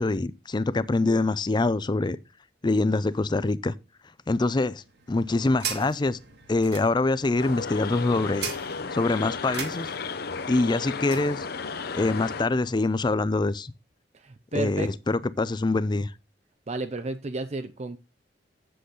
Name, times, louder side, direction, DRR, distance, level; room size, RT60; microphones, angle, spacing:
voice 1, 0.0-2.2 2.6-3.7 4.3-4.8 5.1-6.2 6.5-8.5 8.9-9.9 10.5-11.5 11.9-13.7 14.5-16.1, left 2 dB, 25° left, 0.4 m, -24 dB
sound 1, 4.7-11.3, right 7 dB, 65° right, 1.8 m, -40 dB
sound 2, 7.3-12.5, left 5 dB, 60° left, 0.7 m, -34 dB
voice 2, 14.1-14.9 16.7-18.0, right 2 dB, 40° right, 0.6 m, -32 dB
8.3 x 7.8 x 3.9 m
head